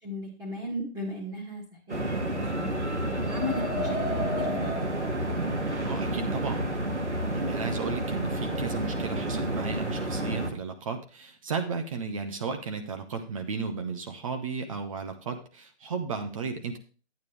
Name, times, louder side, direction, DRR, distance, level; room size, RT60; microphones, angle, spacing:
voice 1, 0.0-2.7 3.2-4.0 4.3-4.9, left 1 dB, 10° right, -2 dB, 1.8 m, -36 dB
sound 1, 1.9-10.5, right 1 dB, 80° right, 2.3 m, -30 dB
voice 2, 5.8-6.7 7.3-16.8, right 5 dB, 30° right, 6 dB, 1.0 m, -34 dB
10.5 x 9.2 x 3.4 m, 0.36 s
figure-of-eight pair, 140°, 34 cm